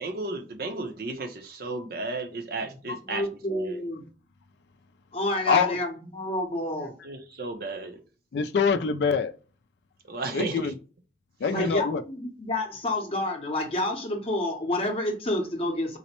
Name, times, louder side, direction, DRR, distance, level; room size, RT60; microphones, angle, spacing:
voice 1, 0.0-3.8 7.0-8.0 10.1-10.8 11.4-11.8, right 2 dB, 55° right, 0.6 m, -34 dB
voice 2, 3.0-4.0 5.1-6.9 11.5-16.0, left 1 dB, 30° left, 0.7 m, -29 dB
voice 3, 8.3-9.3 10.3-10.7 11.4-12.0, left 5 dB, 70° left, 0.4 m, -24 dB
3.9 x 2.1 x 2.9 m
head